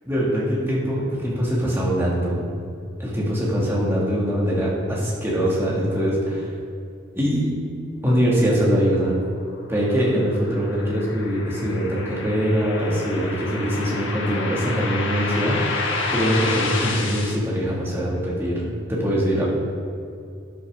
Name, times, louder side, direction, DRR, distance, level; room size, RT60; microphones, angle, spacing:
voice 1, 0.1-2.4 3.0-6.5 7.1-7.5 8.0-9.2 9.7-19.5, equal, 10° right, -6 dB, 2.1 m, -23 dB
sound 1, 9.5-17.3, left 3 dB, 75° left, 1.3 m, -30 dB
12.5 x 8.4 x 3.7 m, 2.4 s
head